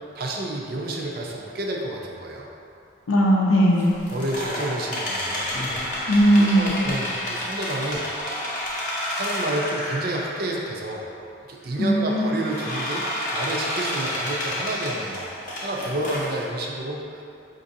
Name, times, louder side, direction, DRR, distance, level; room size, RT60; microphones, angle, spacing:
voice 1, 0.2-2.5 4.1-5.9 6.6-8.1 9.1-11.1 11.5-13.0 13.3-17.2, right 1 dB, 50° right, -1 dB, 0.4 m, -30 dB
voice 2, 3.1-3.9 6.1-6.7 11.8-12.4, equal, 90° left, -1 dB, 0.6 m, -18 dB
sound 1, 3.7-10.5 10.9-11.0 11.7-16.5, left 1 dB, 40° left, 0.6 m, -30 dB
5.1 x 2.6 x 2.6 m, 2.6 s
head